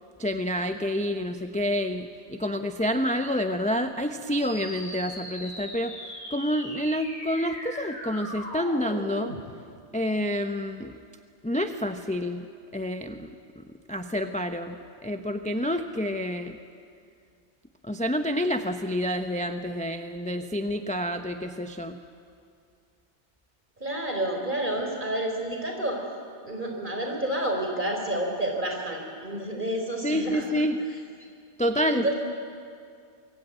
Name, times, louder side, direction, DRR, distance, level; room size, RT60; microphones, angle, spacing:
voice 1, 0.2-5.9 6.3-9.3 9.9-10.9 11.4-12.4 12.7-13.6 13.9-16.6 17.8-22.0 30.0-30.8 31.6-32.1, equal, 5° left, 6 dB, 0.8 m, -28 dB
wave spectrum, 4.4-9.4, left 1 dB, 45° left, 6.6 m, -39 dB
voice 2, 23.8-26.0 26.4-30.4 31.9-32.1, right 1 dB, 45° right, 2 dB, 4.6 m, -29 dB
25.0 x 22.5 x 9.0 m, 2.3 s
omnidirectional pair, 1.2 m